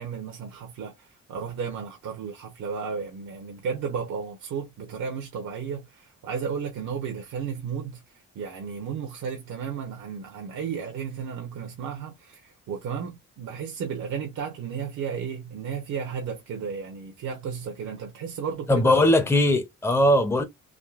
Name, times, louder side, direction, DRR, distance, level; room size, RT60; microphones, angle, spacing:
voice 1, 0.0-19.2, right 6 dB, 65° right, 0.9 m, -33 dB
voice 2, 18.7-20.4, left 1 dB, 10° left, 0.7 m, -20 dB
3.7 x 2.2 x 2.4 m
cardioid pair, 90°, 30 cm